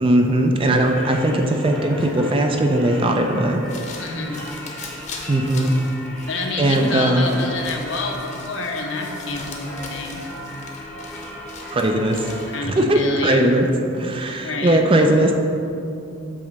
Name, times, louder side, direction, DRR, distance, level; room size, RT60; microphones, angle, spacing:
voice 1, 0.0-3.7 5.3-5.7 6.6-7.3 11.7-12.2 12.6-13.7 13.9-15.3, right 1 dB, 25° right, 3 dB, 0.4 m, -19 dB
Singing / Church bell, 0.8-12.7, equal, 5° left, 0.8 m, -37 dB
sound 1, 3.5-12.7, left 3 dB, 35° left, 0.8 m, -40 dB
voice 2, 4.0-4.4 6.3-10.2 12.5-13.5 14.4-14.8, left 3 dB, 60° left, 2 dB, 0.8 m, -28 dB
8.4 x 3.0 x 6.3 m, 2.7 s
head